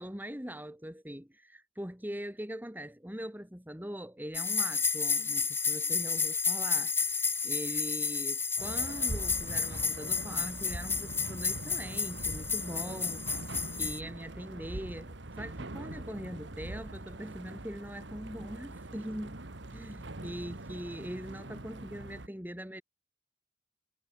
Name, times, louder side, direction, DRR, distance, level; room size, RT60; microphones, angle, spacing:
voice 1, 0.0-13.5 13.7-19.4 19.7-22.8, equal, 10° right, 2.6 m, -42 dB
sound 1, 4.3-14.0, left 5 dB, 10° left, 1.7 m, -31 dB
sound 2, 8.6-22.3, right 2 dB, 70° right, 1.7 m, -43 dB
head